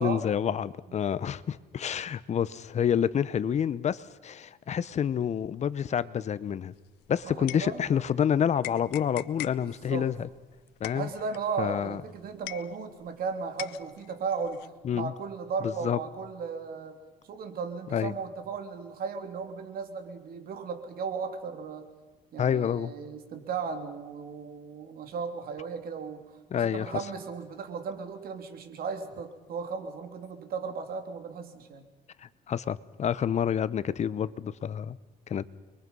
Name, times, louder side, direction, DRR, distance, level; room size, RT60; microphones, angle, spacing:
voice 1, 0.0-6.7 7.1-10.3 10.8-11.1 11.6-12.0 14.8-15.1 15.6-16.0 17.9-18.1 22.4-22.9 26.5-26.9 32.2-35.0 35.3-35.5, left 8 dB, 40° left, 16 dB, 0.9 m, -28 dB
sound 1, 6.8-8.2 8.6-13.2 13.6-14.7, left 17 dB, 90° left, 0.7 m, -42 dB
voice 2, 7.2-7.8 9.6-10.1 10.9-17.0 17.3-21.9 22.3-26.2 26.5-31.8, right 5 dB, 60° right, 6 dB, 3.1 m, -36 dB
29.5 x 22.5 x 5.5 m, 1.2 s
cardioid pair, 110°, 17 cm